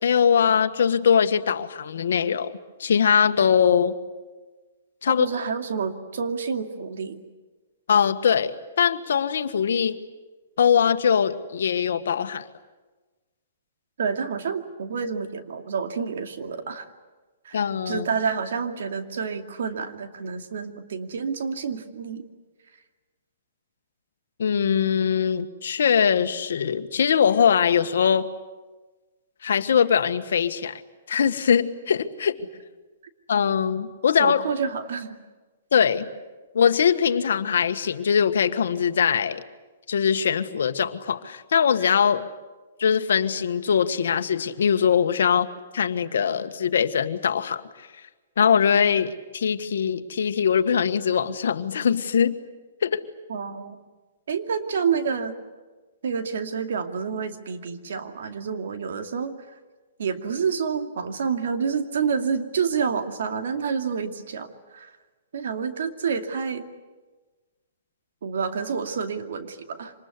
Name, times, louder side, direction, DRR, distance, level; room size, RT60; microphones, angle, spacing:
voice 1, 0.0-2.5 2.8-3.9 5.0-5.3 7.9-10.0 10.6-12.5 17.5-18.1 24.4-28.3 29.4-30.8 31.1-32.4 33.3-34.4 35.7-36.1 36.5-39.4 39.9-42.2 42.8-45.5 45.7-47.9 48.4-52.4 52.8-53.0, left 7 dB, 75° left, 9 dB, 1.5 m, -22 dB
voice 2, 5.1-7.2 14.0-16.9 17.4-22.2 34.2-35.2 53.3-53.8 54.3-55.3 56.0-59.4 60.0-64.9 65.3-66.7 68.2-69.9, right 6 dB, 70° right, 6 dB, 2.4 m, -28 dB
25.5 x 20.5 x 9.7 m, 1.3 s
hypercardioid pair, 145°, 0 cm